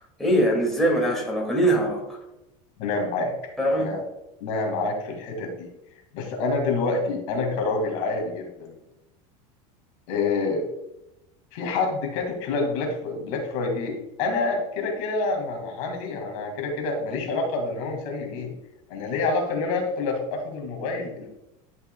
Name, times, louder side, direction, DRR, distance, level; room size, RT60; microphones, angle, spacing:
voice 1, 0.2-2.2 3.6-3.9, right 1 dB, ahead, -2 dB, 2.1 m, -22 dB
voice 2, 2.8-3.3 3.8-4.0 4.4-5.7 6.1-8.8 10.1-10.6 11.5-18.5 18.9-21.3, left 3 dB, 70° left, 2 dB, 2.0 m, -27 dB
11.5 x 5.5 x 2.2 m, 0.90 s
supercardioid pair, 130°, 17 cm